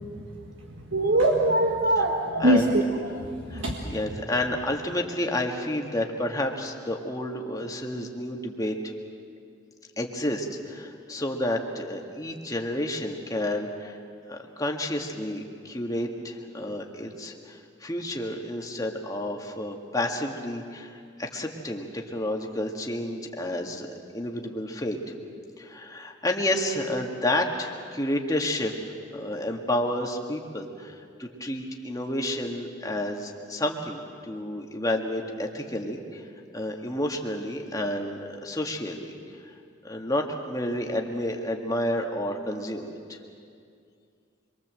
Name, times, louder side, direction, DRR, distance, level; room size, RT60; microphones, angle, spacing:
voice 1, 0.9-2.8 3.2-3.9, right 1 dB, 70° right, 0 dB, 1.8 m, -23 dB
voice 2, 2.4-2.8 3.5-8.8 10.0-14.0 14.3-23.9 24.1-25.0 25.6-28.7 29.1-36.2 36.5-39.1 39.8-43.2, left 1 dB, 20° left, 1 dB, 2.0 m, -30 dB
26.0 x 23.0 x 7.7 m, 2.3 s
head